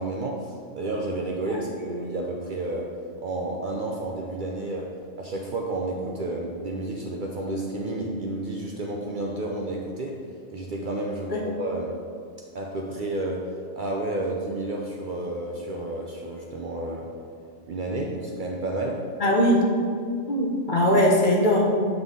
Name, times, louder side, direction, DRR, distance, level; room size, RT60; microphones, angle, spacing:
voice 1, 0.0-2.9 3.2-4.9 5.2-10.2 10.5-11.9 12.5-13.5 13.8-17.1 17.7-19.1, right 2 dB, 60° right, -1 dB, 0.6 m, -31 dB
voice 2, 19.2-19.7 20.3-21.7, equal, 50° left, -1 dB, 0.8 m, -20 dB
7.9 x 3.6 x 3.6 m, 2.3 s
omnidirectional pair, 1.2 m